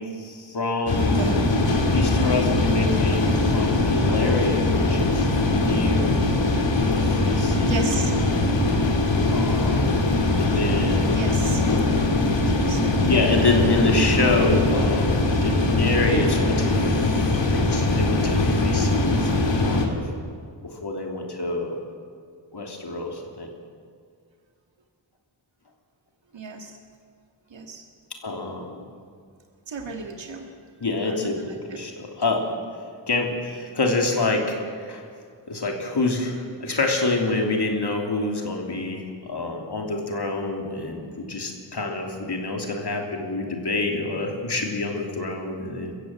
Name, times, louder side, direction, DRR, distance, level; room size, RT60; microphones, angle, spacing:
voice 1, 0.0-1.2 1.9-6.3 6.8-7.9 9.3-10.1 10.4-11.2 13.0-20.1 20.6-21.8 22.5-23.5 28.2-28.8 30.8-32.6 33.1-35.0 35.5-45.9, left 2 dB, 60° left, 1 dB, 3.0 m, -27 dB
sound 1, 0.9-19.9, left 2 dB, 80° left, 2.4 m, -21 dB
voice 2, 1.1-1.4 7.6-8.1 11.1-11.7 12.4-12.8 22.9-23.1 26.3-26.8 27.5-27.8 29.7-30.5 31.1-31.8, right 4 dB, 85° right, 2 dB, 1.9 m, -34 dB
23.0 x 15.0 x 7.8 m, 2.1 s
wide cardioid pair, 100°, 44 cm